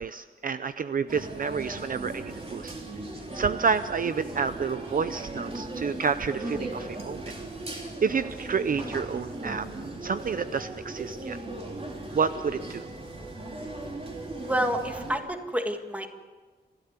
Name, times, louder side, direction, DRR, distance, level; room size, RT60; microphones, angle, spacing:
voice 1, 0.0-2.7 3.3-7.3 7.7-9.7 10.0-11.4 12.1-12.9, right 5 dB, 50° right, 12 dB, 0.5 m, -29 dB
sound 1, 1.1-15.2, right 2 dB, 30° right, 3.3 m, -38 dB
voice 2, 14.4-16.1, equal, 10° right, 5 dB, 1.9 m, -29 dB
30.0 x 13.0 x 8.1 m, 1.4 s
wide cardioid pair, 155°, 19 cm